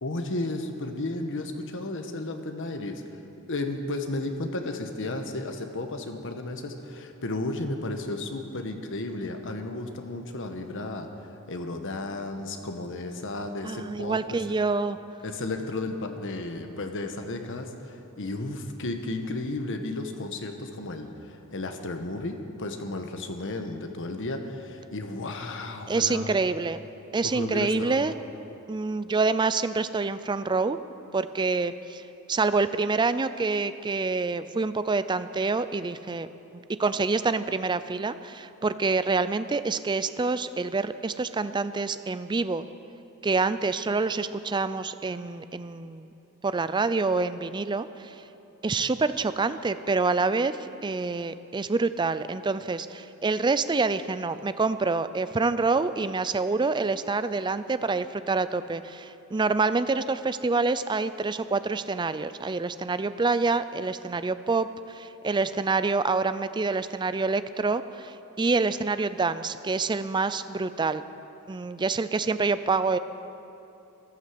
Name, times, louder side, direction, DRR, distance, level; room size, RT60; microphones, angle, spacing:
voice 1, 0.0-3.2 3.5-11.1 11.5-14.4 15.2-26.4 27.2-28.0, left 2 dB, 60° left, 5 dB, 1.2 m, -33 dB
voice 2, 13.6-15.0 25.9-26.8 27.1-28.1 28.7-30.8 31.1-36.3 36.5-42.7 43.2-46.1 46.4-48.2 48.6-71.0 71.5-73.0, right 3 dB, 20° right, 13 dB, 0.4 m, -27 dB
13.5 x 11.5 x 7.6 m, 2.8 s
head